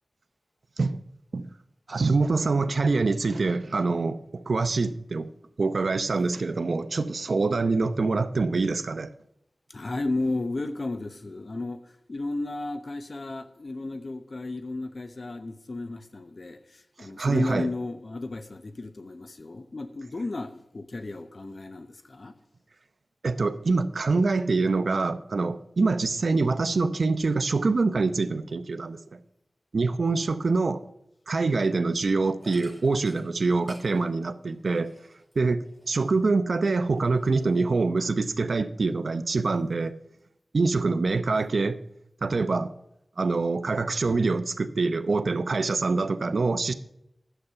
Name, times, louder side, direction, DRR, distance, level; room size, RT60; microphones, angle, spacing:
voice 1, 1.9-5.3 5.6-9.1 17.0-17.7 23.2-29.2 29.7-30.8 31.3-34.9 35.4-39.9 40.5-41.8 42.2-42.7 43.2-46.7, right 3 dB, 75° right, 0.7 m, -25 dB
voice 2, 9.7-22.3, left 2 dB, 60° left, 0.7 m, -34 dB
sound 1, 32.4-36.4 36.8-37.9, equal, 5° left, 5.2 m, -53 dB
11.0 x 7.9 x 5.6 m
cardioid pair, 40°, 0 cm